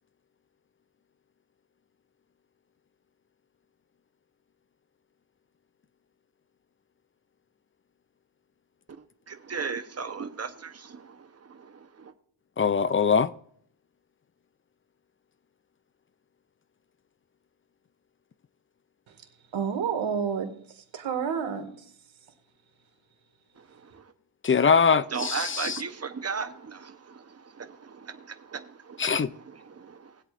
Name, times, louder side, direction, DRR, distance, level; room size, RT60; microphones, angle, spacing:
voice 1, 9.0-12.1 23.6-24.1 25.1-30.2, right 5 dB, 30° right, 1.0 m, -37 dB
voice 2, 12.6-13.3 24.4-25.8 29.0-29.3, left 6 dB, 30° left, 0.4 m, -22 dB
voice 3, 19.5-21.9, right 7 dB, 70° right, 2.1 m, -30 dB
20.0 x 8.1 x 2.6 m
wide cardioid pair, 115°, 49 cm